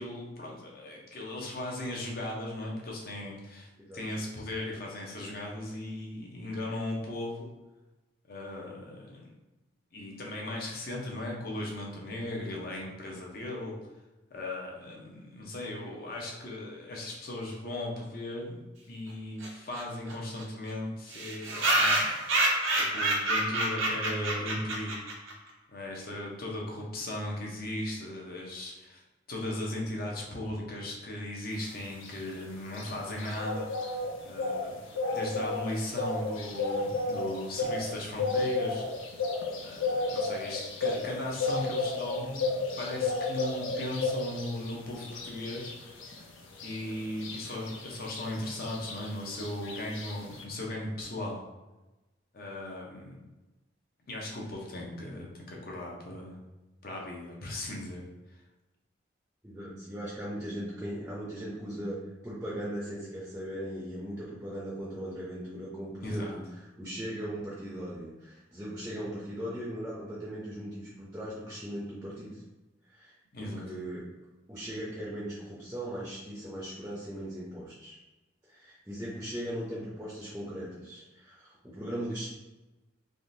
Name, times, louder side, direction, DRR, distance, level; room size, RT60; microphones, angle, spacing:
voice 1, 0.0-7.5 8.3-9.3 9.9-13.9 14.3-22.2 22.8-25.0 25.7-29.0 29.3-33.7 34.2-34.8 35.1-38.9 39.5-45.8 46.6-51.4 52.3-53.2 54.1-56.4 56.8-58.4 66.0-66.4 73.3-73.7, left 1 dB, 50° left, -1 dB, 0.7 m, -37 dB
sound 1, 19.4-19.5 19.7-19.8 20.1-20.2 20.4-20.5 21.1-25.3, right 1 dB, 85° right, 0.7 m, -28 dB
sound 2, 31.6-50.4, left 3 dB, 85° left, 0.5 m, -34 dB
voice 2, 59.4-66.4 66.8-72.4 72.9-73.1 73.4-74.0 74.5-78.0 78.5-82.3, equal, 10° right, -7 dB, 0.5 m, -38 dB
3.5 x 2.5 x 2.6 m, 1.1 s
head